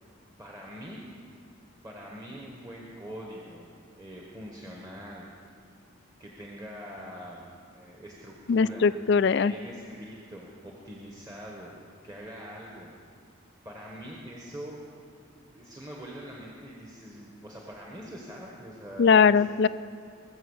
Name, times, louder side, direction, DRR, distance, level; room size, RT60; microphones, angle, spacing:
voice 1, 0.4-1.0 1.8-3.7 4.0-5.3 6.2-7.5 7.7-8.9 9.4-11.7 12.0-12.9 13.6-14.8 15.5-19.4, equal, 15° right, -2 dB, 1.3 m, -43 dB
voice 2, 8.5-9.5 19.0-19.7, left 5 dB, 55° left, 16 dB, 0.3 m, -20 dB
21.5 x 7.2 x 7.2 m, 2.2 s
head